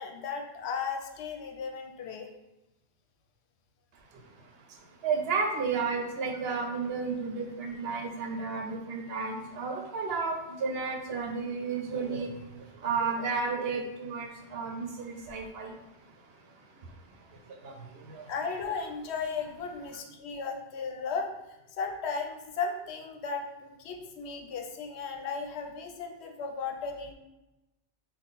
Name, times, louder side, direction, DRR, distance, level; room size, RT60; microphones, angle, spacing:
voice 1, 0.0-2.3 18.3-21.3 21.8-27.1, left 5 dB, 80° left, 3 dB, 0.9 m, -35 dB
voice 2, 4.1-18.3, right 4 dB, 70° right, 2 dB, 0.8 m, -33 dB
3.7 x 2.3 x 4.0 m, 0.97 s
omnidirectional pair, 1.1 m